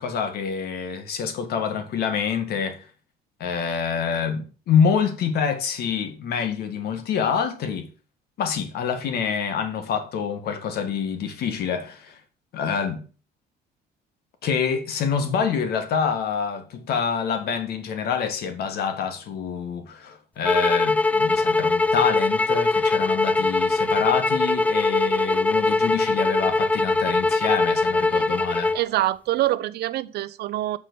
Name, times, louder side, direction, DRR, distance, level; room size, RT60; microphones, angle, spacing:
voice 1, 0.0-2.9 3.4-7.9 8.4-12.2 12.5-13.0 14.4-28.7, left 6 dB, 70° left, 1.9 m, -26 dB
sound 1, 20.4-28.8, left 3 dB, 10° left, 0.4 m, -21 dB
voice 2, 28.7-30.8, right 15 dB, 75° right, 0.7 m, -25 dB
7.3 x 5.5 x 6.9 m
cardioid pair, 110°, 17 cm